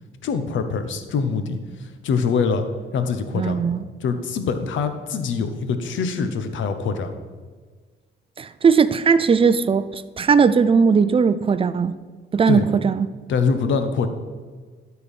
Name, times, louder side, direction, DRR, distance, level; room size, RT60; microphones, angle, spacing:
voice 1, 0.2-2.7 2.9-3.6 4.0-7.2 12.5-12.7 13.3-14.1, left 5 dB, 75° left, 9 dB, 1.0 m, -24 dB
voice 2, 3.3-3.8 8.4-12.0 12.3-13.1, right 5 dB, 30° right, 14 dB, 0.5 m, -18 dB
12.5 x 4.6 x 5.3 m, 1.5 s
cardioid pair, 90°, 20 cm